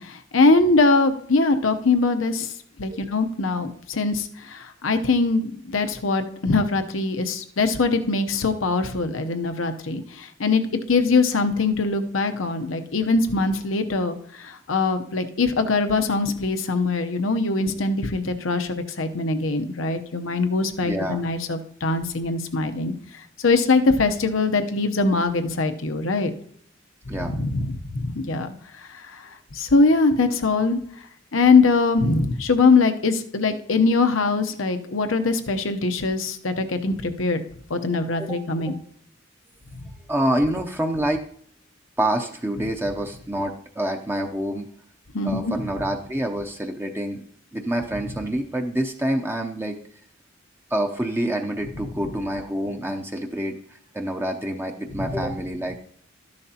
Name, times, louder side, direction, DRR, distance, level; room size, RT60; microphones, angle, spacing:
voice 1, 0.0-2.5 2.8-26.3 27.1-30.8 31.3-37.4 37.7-38.7 45.1-45.5 54.9-55.2, left 3 dB, 90° left, 7 dB, 0.8 m, -22 dB
voice 2, 20.8-21.2 27.1-27.3 38.2-38.4 40.1-41.2 42.0-44.7 45.2-47.2 47.5-49.8 50.7-53.6 53.9-55.8, right 1 dB, 10° right, 3 dB, 0.6 m, -27 dB
13.0 x 10.5 x 2.8 m, 0.62 s
head